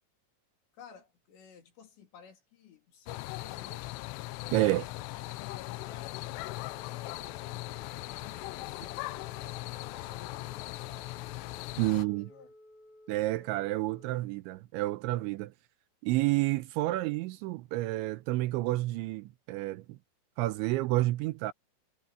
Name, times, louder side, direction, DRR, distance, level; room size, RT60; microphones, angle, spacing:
voice 1, 0.7-4.1 4.4-7.8 8.2-11.1 11.6-12.5, left 6 dB, 65° left, 5.5 m, -55 dB
sound 1, 3.1-12.1, left 20 dB, 80° left, 3.0 m, -39 dB
voice 2, 4.5-4.8 11.8-12.3 13.1-15.5 16.0-20.0 20.4-21.5, right 18 dB, 85° right, 2.9 m, -30 dB
Telephone, 5.7-14.1, left 1 dB, 40° left, 3.7 m, -56 dB
omnidirectional pair, 5.6 m